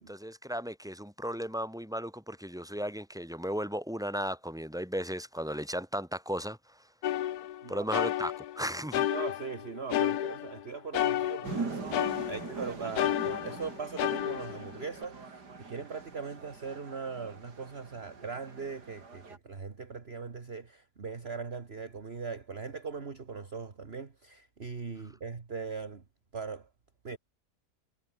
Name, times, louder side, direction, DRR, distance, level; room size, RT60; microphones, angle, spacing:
voice 1, 0.1-6.6 7.7-9.1, equal, ahead, 5.8 m, -35 dB
sound 1, 7.0-8.6 8.9-10.6 10.9-12.6 13.0-15.1, left 12 dB, 70° left, 1.2 m, -31 dB
voice 2, 9.1-26.0 26.3-26.7 27.0-27.2, right 5 dB, 40° right, 1.9 m, -40 dB
sound 2, 11.4-19.4, right 4 dB, 85° right, 3.7 m, -42 dB
omnidirectional pair, 1.7 m